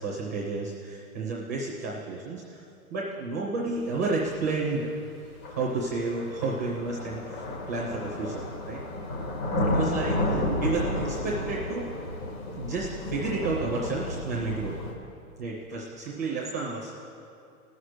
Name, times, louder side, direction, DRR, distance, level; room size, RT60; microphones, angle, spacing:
voice 1, 0.0-2.6 2.9-4.9 5.5-8.8 9.6-11.9 12.6-14.8 15.4-16.9, right 3 dB, 10° right, -4 dB, 0.5 m, -31 dB
sound 1, 4.4-4.5 5.4-14.9, left 1 dB, 75° left, 2.6 m, -31 dB
16.0 x 6.5 x 7.9 m, 2.5 s
hypercardioid pair, 170°, 44 cm